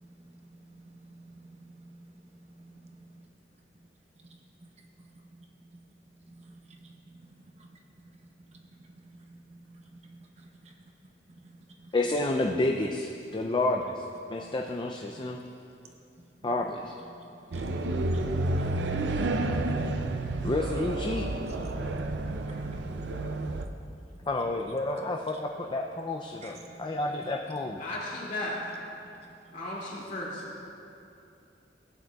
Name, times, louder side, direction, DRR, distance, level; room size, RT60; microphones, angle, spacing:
voice 1, 0.0-3.3 4.2-5.8 6.2-10.7 11.3-11.9 14.4-14.5 15.8-16.2 17.1-20.5 21.4-24.0 24.7-24.8 25.3-25.4 26.4-27.0 27.9-28.0 29.5-29.8, right 2 dB, 35° right, 0 dB, 0.9 m, -53 dB
voice 2, 11.9-15.4 16.4-16.9 20.4-21.3 24.3-27.8, left 2 dB, 25° left, 2 dB, 0.4 m, -30 dB
sound 1, 17.5-23.7, right 2 dB, 70° right, 0.5 m, -30 dB
voice 3, 27.8-28.6 29.5-30.4, left 1 dB, 45° left, -5 dB, 2.5 m, -35 dB
16.0 x 9.2 x 2.3 m, 2.7 s
head